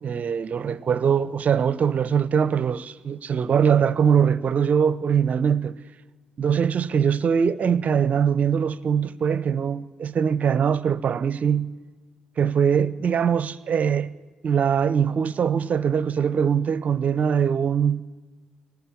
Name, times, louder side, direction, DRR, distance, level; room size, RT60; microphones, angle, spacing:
voice 1, 0.0-5.8 6.4-11.7 12.4-14.1 14.4-18.0, right 7 dB, 50° right, 0.7 m, -22 dB
20.0 x 18.0 x 8.6 m
figure-of-eight pair, 40°, 3 cm